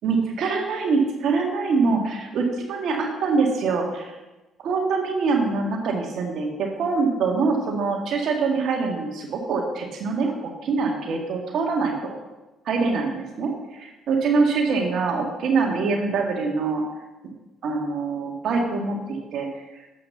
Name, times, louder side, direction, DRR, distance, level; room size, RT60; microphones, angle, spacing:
voice 1, 0.0-4.1 4.6-10.3 10.6-12.1 12.7-16.8 17.6-19.5, right 4 dB, 65° right, 1 dB, 1.8 m, -24 dB
7.6 x 5.7 x 6.8 m, 1.1 s
hypercardioid pair, 55°, 0 cm